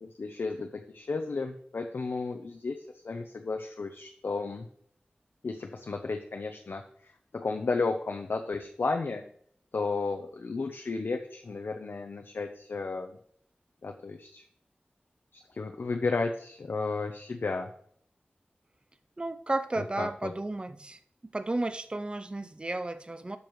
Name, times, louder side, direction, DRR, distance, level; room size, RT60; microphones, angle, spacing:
voice 1, 0.0-4.7 5.4-9.2 9.7-13.2 13.8-14.4 15.3-17.7 19.8-20.3, left 3 dB, 85° left, 4 dB, 0.7 m, -33 dB
voice 2, 19.2-21.0 21.3-23.4, right 2 dB, 30° right, 11 dB, 0.5 m, -33 dB
12.0 x 6.8 x 3.1 m, 0.63 s
wide cardioid pair, 65°, 4 cm